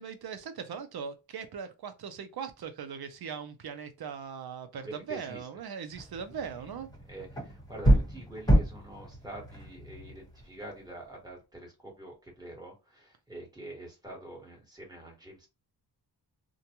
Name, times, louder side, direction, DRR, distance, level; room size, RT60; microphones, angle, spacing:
voice 1, 0.0-6.9, right 7 dB, 60° right, 0.6 m, -40 dB
voice 2, 4.8-5.5 7.1-15.5, right 1 dB, 10° right, 1.3 m, -45 dB
sound 1, 5.9-10.8, equal, 10° left, 1.2 m, -28 dB
2.5 x 2.2 x 2.9 m
wide cardioid pair, 115°, 42 cm